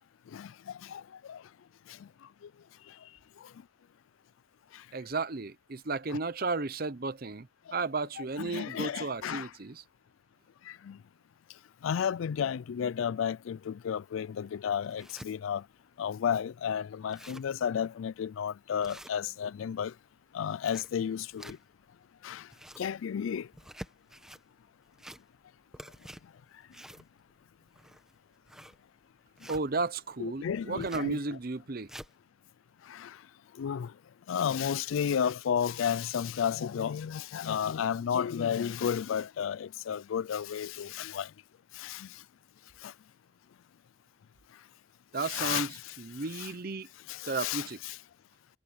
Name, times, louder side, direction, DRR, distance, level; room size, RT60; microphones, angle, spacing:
voice 1, 4.9-9.8 29.5-31.9 45.1-46.9 47.3-47.8, right 3 dB, 50° right, 0.8 m, -34 dB
voice 2, 8.2-9.5 10.7-11.0 11.8-15.6 16.0-19.9 20.3-21.6 22.2-22.5 22.8-23.5 30.2-31.4 32.9-33.2 33.6-33.9 34.3-41.3 41.8-42.1 42.8-42.9 45.2-45.9 46.3-46.5 47.1-48.0, left 8 dB, 85° left, 0.4 m, -32 dB
sound 1, 14.0-14.1 14.6-15.3 15.9-16.0 16.2-16.3 16.7-16.8 17.0-17.6 18.0-18.2 18.8-19.6 20.4-21.9 22.3-22.9 23.5-24.4 24.9-25.5 25.7-29.7 30.8-31.1 31.6-32.1, equal, 5° right, 1.2 m, -48 dB
head